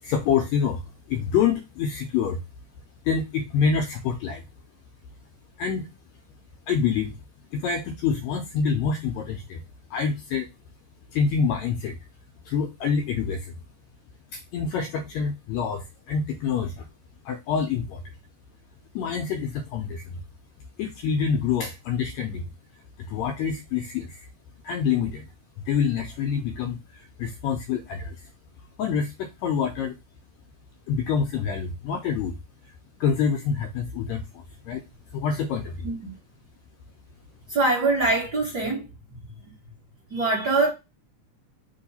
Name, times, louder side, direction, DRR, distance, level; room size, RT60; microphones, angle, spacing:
voice 1, 0.0-2.4 3.0-4.4 5.6-5.9 6.7-7.2 7.5-9.6 9.9-10.5 11.1-12.0 12.4-13.6 14.3-16.9 17.2-18.1 18.9-20.2 20.8-22.5 23.0-24.3 24.6-25.3 25.6-28.3 28.8-30.0 30.9-32.4 33.0-34.8 35.1-35.9, left 6 dB, 80° left, 1.6 m, -26 dB
voice 2, 37.5-39.2 40.1-40.7, right 3 dB, 40° right, 1.5 m, -24 dB
4.6 x 2.8 x 4.0 m
omnidirectional pair, 3.6 m